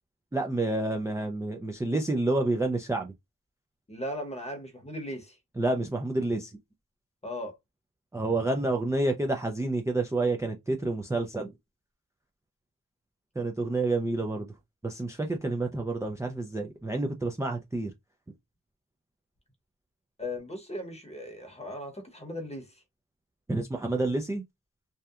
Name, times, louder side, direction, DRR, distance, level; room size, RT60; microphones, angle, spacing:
voice 1, 0.3-3.1 5.6-6.5 8.1-11.5 13.4-14.5 14.8-17.9 23.5-24.4, right 2 dB, 10° right, 0.3 m, -29 dB
voice 2, 3.9-5.4 7.2-7.6 20.2-22.8, left 1 dB, 20° left, 0.8 m, -37 dB
2.7 x 2.1 x 2.3 m
wide cardioid pair, 65°, 33 cm